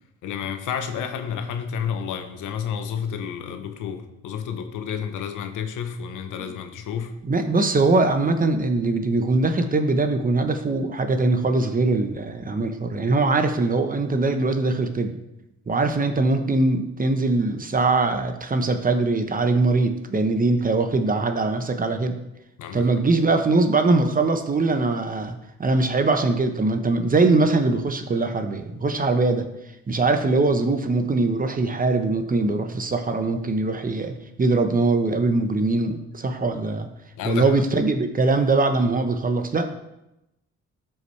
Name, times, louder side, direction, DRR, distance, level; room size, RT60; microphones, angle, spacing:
voice 1, 0.2-7.2 22.6-22.9 37.2-37.5, left 7 dB, 85° left, 7 dB, 1.0 m, -30 dB
voice 2, 7.2-15.2 15.7-22.2 22.7-29.5 29.9-36.9 37.2-39.7, right 3 dB, 30° right, 7 dB, 1.0 m, -22 dB
12.5 x 5.7 x 3.3 m, 0.89 s
cardioid pair, 90°, 30 cm